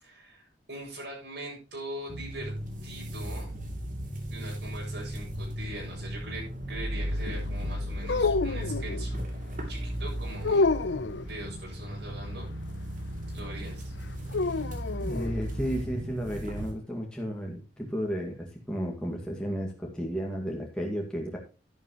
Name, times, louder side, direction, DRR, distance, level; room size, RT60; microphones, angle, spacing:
voice 1, 0.0-2.5 2.8-3.5 4.3-9.1 9.7-10.6 11.2-12.5 12.8-12.9 13.3-13.9, right 1 dB, 75° right, -2 dB, 6.5 m, -42 dB
sound 1, 2.1-16.7, equal, 50° right, 2.8 m, -36 dB
sound 2, 8.0-9.1 10.4-11.3 14.3-15.4, left 3 dB, 85° left, 0.7 m, -27 dB
voice 2, 15.0-21.4, equal, 5° left, -2 dB, 2.1 m, -33 dB
11.0 x 11.0 x 3.0 m, 0.30 s
head